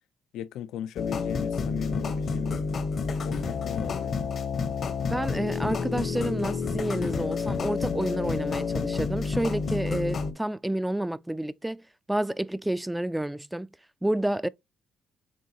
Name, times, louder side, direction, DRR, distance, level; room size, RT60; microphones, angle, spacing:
voice 1, 0.3-2.6 3.2-4.1, left 10 dB, 80° left, 0.4 m, -37 dB
sound 1, 1.0-10.3, left 5 dB, 55° left, 0.9 m, -29 dB
voice 2, 5.1-11.8 12.1-13.7 14.0-14.5, right 1 dB, 10° right, 0.4 m, -29 dB
7.5 x 2.5 x 2.8 m
supercardioid pair, 70°, 0 cm